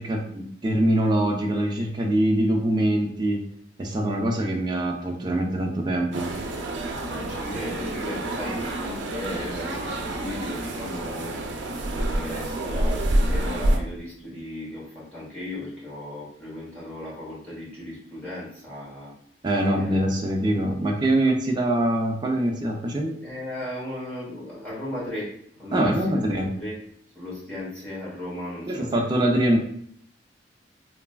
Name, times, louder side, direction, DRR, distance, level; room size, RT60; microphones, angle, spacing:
voice 1, 0.0-3.4 3.8-6.3 19.4-23.1 25.7-26.5 28.7-29.6, right 1 dB, 25° right, 1 dB, 0.3 m, -23 dB
sound 1, 6.1-13.8, right 1 dB, 90° right, 0.4 m, -28 dB
voice 2, 7.1-11.4 12.0-19.1 19.7-20.0 23.2-26.7 27.1-29.0, left 1 dB, 10° left, -9 dB, 1.0 m, -36 dB
3.2 x 2.3 x 2.2 m, 0.66 s
head